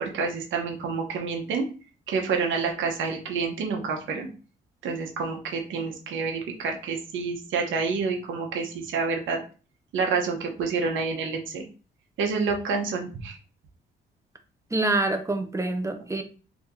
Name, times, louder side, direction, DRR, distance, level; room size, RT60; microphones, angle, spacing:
voice 1, 0.0-1.7 2.1-4.3 4.8-9.4 9.9-11.6 12.2-13.4, right 5 dB, 75° right, 2 dB, 0.9 m, -28 dB
voice 2, 14.7-16.2, right 2 dB, 15° right, 7 dB, 0.6 m, -26 dB
2.9 x 2.6 x 3.6 m, 0.36 s
cardioid pair, 90°, 20 cm